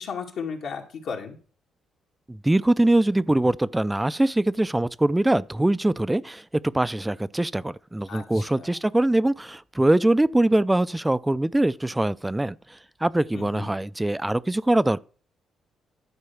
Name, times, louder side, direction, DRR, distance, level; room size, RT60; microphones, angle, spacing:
voice 1, 0.0-1.4 8.1-8.8 13.3-13.7, left 6 dB, 70° left, 2.3 m, -35 dB
voice 2, 2.3-12.6 13.0-15.0, right 1 dB, 10° right, 0.4 m, -22 dB
11.5 x 4.7 x 7.0 m
cardioid pair, 90°, 0 cm